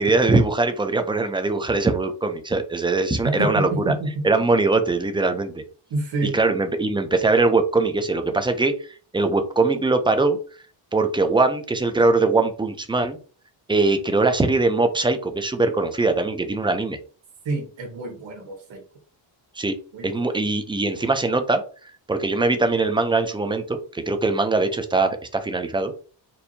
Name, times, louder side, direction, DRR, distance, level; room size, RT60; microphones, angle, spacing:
voice 1, 0.0-3.9 4.2-5.6 6.2-8.9 9.1-10.4 10.9-13.2 13.7-17.0 19.6-19.8 20.0-26.0, right 3 dB, 10° right, 7 dB, 0.4 m, -21 dB
voice 2, 3.2-4.1 5.9-6.3 17.4-18.8 19.9-20.3, right 2 dB, 70° right, 1 dB, 1.6 m, -28 dB
4.4 x 2.7 x 2.7 m, 0.38 s
cardioid pair, 105°, 47 cm